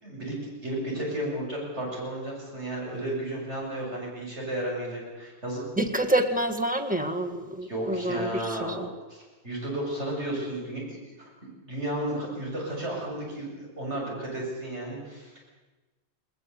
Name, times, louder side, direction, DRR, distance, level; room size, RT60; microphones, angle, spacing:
voice 1, 0.0-5.6 7.7-11.3 11.6-15.4, right 1 dB, 80° right, -3 dB, 7.7 m, -33 dB
voice 2, 5.8-8.9, right 1 dB, 5° right, 3 dB, 1.7 m, -27 dB
20.5 x 19.5 x 8.3 m, 1.1 s
omnidirectional pair, 1.2 m